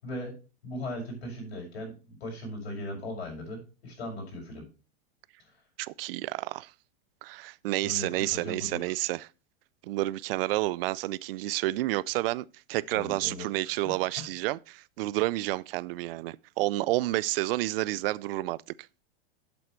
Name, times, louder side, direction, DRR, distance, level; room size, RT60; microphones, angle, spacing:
voice 1, 0.0-0.3 0.6-4.7 5.4-5.6 7.8-8.9 12.9-13.7 14.2-14.3, left 1 dB, 90° left, 5.7 m, -38 dB
voice 2, 5.8-6.7 7.2-9.2 9.8-18.6, right 18 dB, 65° right, 0.5 m, -30 dB
8.0 x 7.8 x 4.5 m
supercardioid pair, 135°, 31 cm